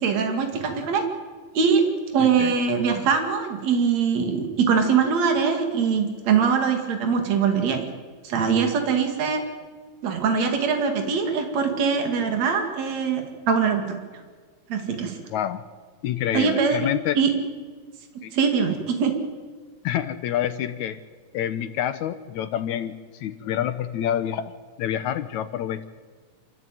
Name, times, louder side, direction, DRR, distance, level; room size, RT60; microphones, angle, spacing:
voice 1, 0.0-1.0 1.5-1.8 2.1-7.9 8.2-9.4 10.0-14.0 14.7-15.2 16.3-16.8 17.2-17.3 18.3-19.1, right 6 dB, 55° right, 5 dB, 3.5 m, -22 dB
voice 2, 2.2-2.5 15.3-15.6 16.0-17.2 18.2-18.3 19.8-21.0 21.3-24.5 24.8-25.8, left 10 dB, 75° left, 11 dB, 2.0 m, -27 dB
27.5 x 14.0 x 9.3 m, 1.5 s
omnidirectional pair, 3.7 m